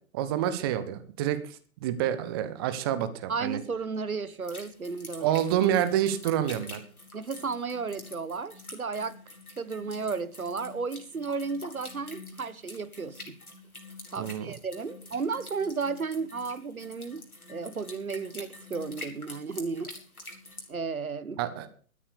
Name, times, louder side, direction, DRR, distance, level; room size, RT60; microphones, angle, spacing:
voice 1, 0.1-3.6 5.2-6.8 14.2-14.5 21.4-21.7, right 11 dB, 15° right, 0.8 m, -28 dB
voice 2, 3.3-5.4 7.1-9.2 9.6-13.4 14.1-17.2 17.5-19.9 20.7-21.4, right 4 dB, 75° right, 1.4 m, -33 dB
sound 1, 4.4-20.7, left 2 dB, 85° left, 4.7 m, -46 dB
13.0 x 10.0 x 6.7 m
figure-of-eight pair, 130°, 43 cm